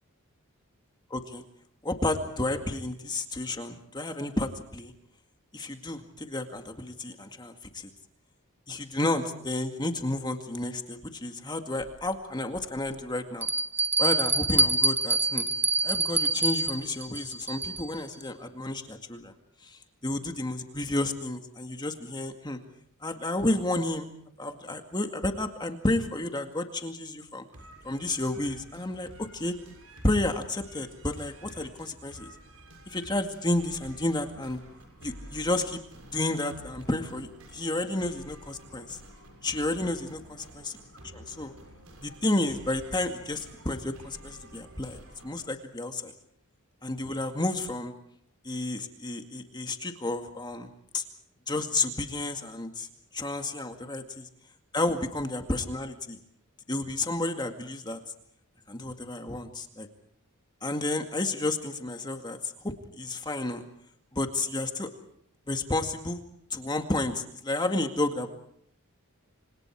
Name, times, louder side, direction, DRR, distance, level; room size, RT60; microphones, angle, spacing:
voice 1, 1.1-1.4 1.8-4.9 5.5-7.9 8.7-13.5 14.0-15.5 15.8-19.3 19.6-22.6 23.0-24.1 24.4-27.4 27.8-29.5 30.0-32.3 32.9-34.6 35.0-35.8 36.1-39.0 39.4-40.2 41.1-41.5 42.0-46.1 46.8-47.9 48.4-51.0 51.5-52.9 53.1-54.3 54.7-56.2 56.7-58.0 58.7-59.9 60.6-63.6 64.1-64.9 65.5-66.2 66.5-68.3, left 2 dB, 20° left, 5 dB, 2.1 m, -31 dB
Bell, 11.8-11.9 12.6-12.7 13.4-18.0, right 2 dB, 10° right, 0.9 m, -26 dB
sound 1, 27.5-45.5, right 1 dB, 70° right, 7.1 m, -50 dB
29.5 x 26.5 x 4.8 m, 0.67 s
head